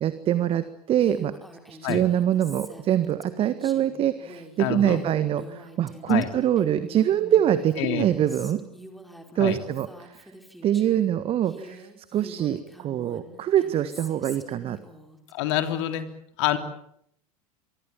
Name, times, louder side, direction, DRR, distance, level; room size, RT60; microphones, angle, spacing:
voice 1, 0.0-1.3 1.7-8.6 9.3-10.2 10.6-14.8, right 11 dB, 30° right, 12 dB, 1.6 m, -24 dB
Female speech woman speaking, 1.0-11.1 11.4-15.3, right 1 dB, ahead, 4.7 m, -46 dB
voice 2, 4.6-5.0 6.1-6.3 7.8-8.1 9.4-9.6 15.3-16.1 16.4-16.6, left 12 dB, 50° left, 7 dB, 3.2 m, -26 dB
27.5 x 24.0 x 7.5 m, 0.71 s
figure-of-eight pair, 85°, 19 cm